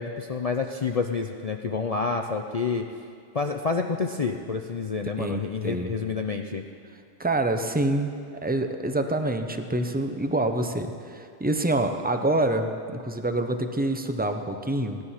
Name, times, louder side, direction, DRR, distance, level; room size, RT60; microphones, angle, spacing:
voice 1, 0.0-2.8 3.3-6.6, left 4 dB, 55° left, 4 dB, 0.4 m, -28 dB
voice 2, 5.2-5.9 7.2-8.1 8.4-15.1, right 2 dB, 15° right, 6 dB, 0.4 m, -26 dB
17.0 x 11.0 x 5.7 m, 2.3 s
omnidirectional pair, 1.4 m